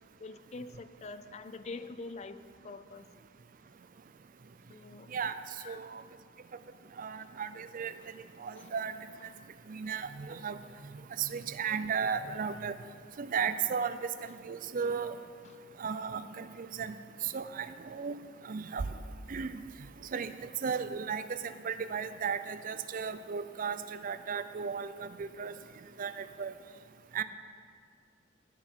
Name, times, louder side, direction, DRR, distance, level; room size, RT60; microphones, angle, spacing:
voice 1, 0.2-3.1 4.7-5.1 5.6-5.8 8.6-8.7 15.5-15.6, left 3 dB, 35° left, 12 dB, 0.4 m, -45 dB
voice 2, 5.7-6.0 7.0-7.9 8.4-8.9 9.7-10.6 11.2-12.7 13.2-15.2 15.8-16.9 17.2-18.2 18.5-18.9 19.3-19.6 20.1-20.3 20.6-25.5 26.0-26.5 27.1-27.2, right 6 dB, 45° right, 12 dB, 0.5 m, -35 dB
13.5 x 7.7 x 4.5 m, 2.2 s
head